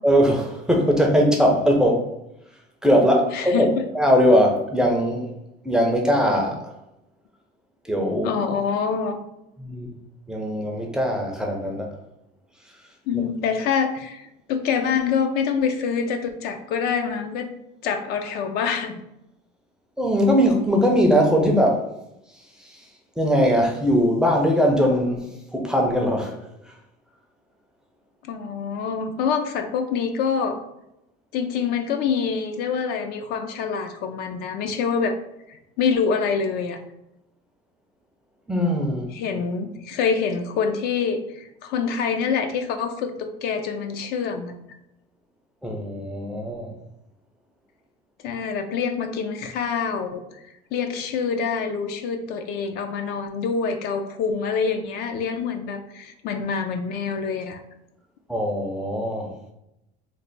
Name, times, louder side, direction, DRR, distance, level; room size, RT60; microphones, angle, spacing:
voice 1, 0.0-2.1 2.8-5.3 5.6-6.7 7.8-8.3 9.6-9.9 10.3-11.9 13.1-13.2 20.0-21.9 22.6-22.9 23.2-26.4 26.6-26.7 38.5-39.1 45.6-46.7 58.3-59.3, equal, 5° right, 0 dB, 0.4 m, -20 dB
voice 2, 3.3-3.7 8.2-9.2 13.1-17.5 17.8-19.0 28.3-30.6 31.3-35.1 35.5-36.8 39.1-44.5 48.2-50.2 50.7-57.6, left 6 dB, 55° left, 7 dB, 0.4 m, -26 dB
3.2 x 2.1 x 3.9 m, 0.84 s
cardioid pair, 150°, 19 cm